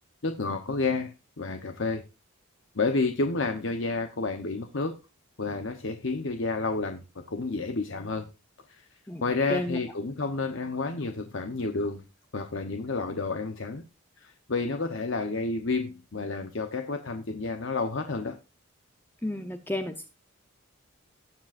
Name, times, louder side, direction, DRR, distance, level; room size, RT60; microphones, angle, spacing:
voice 1, 0.2-2.0 2.7-5.0 5.4-8.3 8.7-8.9 9.2-12.0 12.3-13.8 14.2-18.4, left 3 dB, 60° left, 6 dB, 0.9 m, -30 dB
voice 2, 9.1-9.8 19.2-20.1, left 1 dB, 10° left, 6 dB, 0.7 m, -32 dB
18.0 x 7.5 x 2.5 m, 0.29 s
head